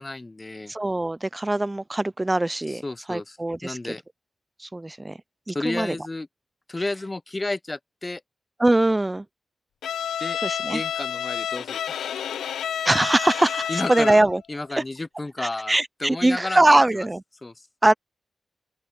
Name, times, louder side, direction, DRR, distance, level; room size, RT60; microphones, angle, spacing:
voice 1, 0.0-0.7 2.7-3.4 3.6-4.0 5.5-6.3 6.7-8.2 10.2-10.4 10.7-12.1 13.7-14.1 14.5-16.8 17.4-17.5, left 2 dB, 30° left, 0.8 m, -32 dB
voice 2, 0.7-2.8 3.1-4.0 4.6-5.2 5.5-6.0 8.6-9.3 10.4-10.8 12.8-14.4 14.8-14.9 15.4-17.2 17.8-17.9, right 2 dB, 20° right, 0.6 m, -22 dB
Bowed string instrument, 9.8-14.4, left 9 dB, 90° left, 0.7 m, -29 dB
open air
supercardioid pair, 45°, 0 cm